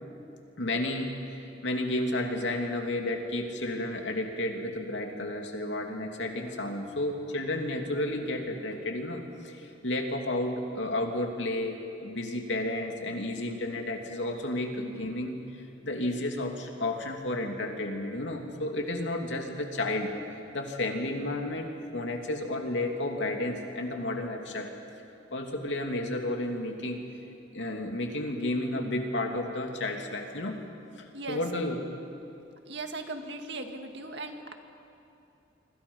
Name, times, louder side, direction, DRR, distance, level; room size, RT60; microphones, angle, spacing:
voice 1, 0.6-20.1 20.5-24.7 25.3-27.0 27.5-30.6 31.0-31.9, left 1 dB, 80° left, 2 dB, 2.8 m, -32 dB
voice 2, 32.7-34.5, right 2 dB, 65° right, 5 dB, 2.0 m, -38 dB
27.0 x 25.0 x 5.6 m, 2.9 s
head